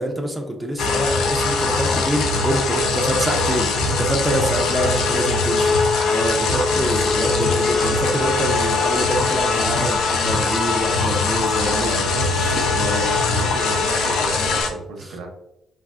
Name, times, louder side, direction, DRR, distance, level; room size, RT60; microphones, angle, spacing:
voice 1, 0.0-13.5 15.1-15.2, equal, 5° right, 1 dB, 0.4 m, -26 dB
sound 1, 0.8-14.7, left 3 dB, 80° left, 0.4 m, -21 dB
Singing, 4.7-14.6, left 1 dB, 25° left, 1.0 m, -37 dB
voice 2, 11.6-12.1 13.3-15.3, right 3 dB, 75° right, 3 dB, 0.6 m, -32 dB
3.4 x 2.4 x 2.4 m, 0.85 s
cardioid pair, 155°, 0 cm